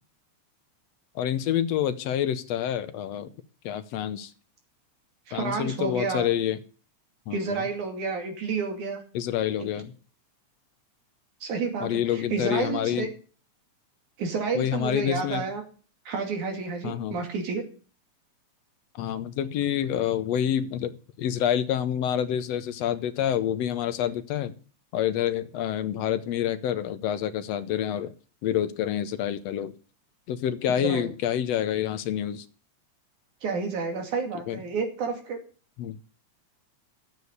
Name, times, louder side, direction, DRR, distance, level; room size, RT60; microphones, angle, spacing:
voice 1, 1.2-3.3 3.6-4.3 5.3-6.6 7.3-7.6 9.1-9.9 11.8-13.1 14.6-15.5 16.8-17.2 19.0-20.9 21.2-24.5 24.9-28.1 28.4-29.7 30.3-32.5 34.5-34.6 35.8-36.0, left 10 dB, 70° left, 11 dB, 1.8 m, -27 dB
voice 2, 5.3-6.3 7.3-9.0 9.6-9.7 11.4-13.1 14.2-15.6 16.1-17.6 30.8-31.1 33.4-35.4, right 4 dB, 85° right, 4 dB, 4.0 m, -30 dB
12.5 x 8.3 x 8.0 m, 0.39 s
omnidirectional pair, 3.4 m